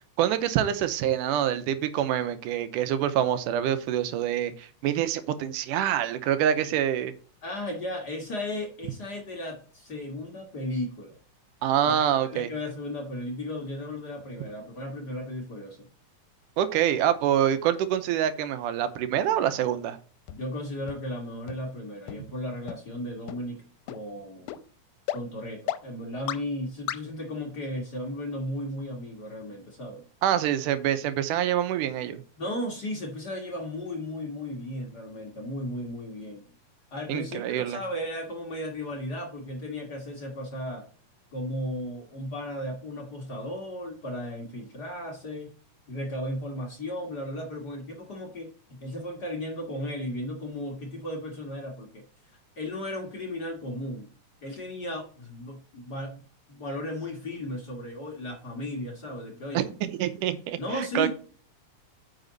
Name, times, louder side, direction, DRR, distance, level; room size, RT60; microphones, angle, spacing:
voice 1, 0.2-7.1 11.6-12.5 16.6-20.0 30.2-32.2 37.1-37.8 59.5-61.1, right 10 dB, 90° right, 11 dB, 2.4 m, -26 dB
voice 2, 7.4-11.2 11.9-15.9 20.3-24.6 25.1-30.0 32.4-36.4 36.9-40.8 41.3-45.5 45.9-52.0 52.6-54.1 54.4-56.2 56.5-59.7 60.6-61.1, left 1 dB, 40° left, 1 dB, 1.7 m, -35 dB
sound 1, 20.3-20.4 20.9-21.0 21.5-21.6 22.1-22.2 22.7-22.8 23.3-23.4 23.9-24.0 24.5-24.6 25.1-25.2 25.7-25.8 26.3-26.4 26.9-27.0, left 13 dB, 85° left, 2.1 m, -32 dB
9.1 x 5.3 x 4.0 m, 0.40 s
omnidirectional pair, 3.6 m